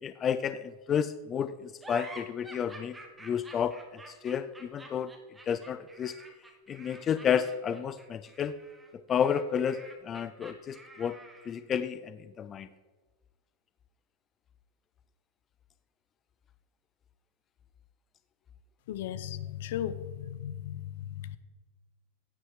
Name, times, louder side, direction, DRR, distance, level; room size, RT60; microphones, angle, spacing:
voice 1, 0.0-3.0 3.2-5.1 5.5-6.2 6.7-8.6 8.9-11.2 11.5-12.7, left 8 dB, 20° left, 12 dB, 0.4 m, -31 dB
sound 1, 1.8-11.6, right 2 dB, 10° right, 1.6 m, -49 dB
voice 2, 18.9-21.4, left 11 dB, 70° left, 14 dB, 0.9 m, -36 dB
16.0 x 9.8 x 4.9 m, 1.3 s
supercardioid pair, 155°, 0 cm